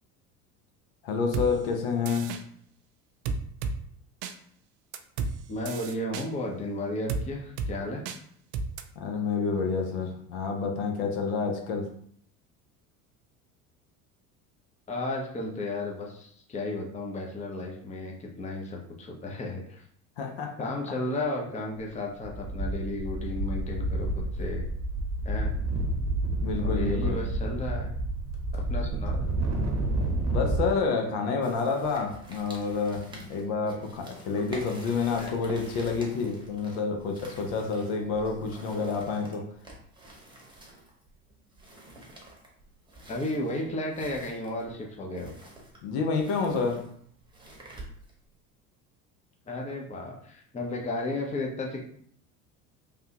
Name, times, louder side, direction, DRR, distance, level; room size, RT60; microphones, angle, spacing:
voice 1, 1.0-2.3 9.0-11.9 20.2-20.6 26.4-27.2 30.3-39.5 45.8-46.9, left 4 dB, 60° left, 3 dB, 0.8 m, -29 dB
sound 1, 1.3-1.5 2.1-2.4 3.3-3.8 4.2-4.3 4.9-5.3 5.7-6.3 7.1-7.2 7.6-7.7 8.1-8.2 8.5-8.8, right 4 dB, 60° right, 0.5 m, -31 dB
voice 2, 5.5-8.0 14.9-19.8 20.6-24.7 25.2-25.5 26.6-27.9 28.5-29.2 35.1-35.3 43.1-45.3 49.5-51.8, left 2 dB, 15° left, -1 dB, 0.7 m, -34 dB
sound 2, 21.8-21.9 22.2-30.7, right 1 dB, 35° right, 0.9 m, -29 dB
sound 3, 31.4-48.3, right 1 dB, 10° right, 1.0 m, -48 dB
3.4 x 2.3 x 2.9 m, 0.64 s
hypercardioid pair, 70°, 44 cm